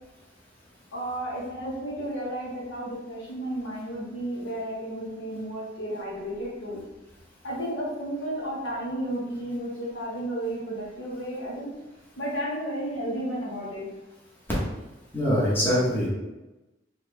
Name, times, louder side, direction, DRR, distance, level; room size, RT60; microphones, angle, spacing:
voice 1, 0.9-6.8 7.4-11.7 12.2-13.9, right 1 dB, 75° left, -5 dB, 1.3 m, -32 dB
voice 2, 15.1-16.1, equal, 10° left, -8 dB, 1.1 m, -23 dB
4.3 x 2.8 x 3.3 m, 1.0 s
head